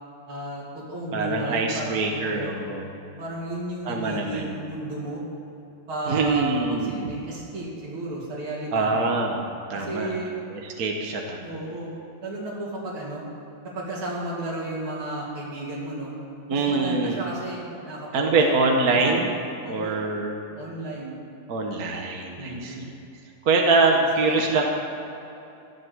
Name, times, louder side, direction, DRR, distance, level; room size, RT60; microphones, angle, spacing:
voice 1, 0.3-2.5 3.2-5.2 5.9-8.9 9.7-10.3 11.4-11.9 12.2-13.2 13.8-16.1 16.5-18.4 18.7-19.2 19.6-20.0 20.6-21.2 22.4-22.8 24.3-24.4, right 1 dB, 80° right, -7 dB, 3.6 m, -33 dB
voice 2, 1.1-3.0 3.8-4.6 6.1-7.1 8.7-9.4 9.7-10.2 10.5-11.5 16.5-17.2 18.1-19.3 19.7-20.3 21.5-22.9 23.4-24.6, right 3 dB, 50° right, 1 dB, 1.6 m, -24 dB
15.5 x 11.0 x 7.9 m, 2.8 s
omnidirectional pair, 2.3 m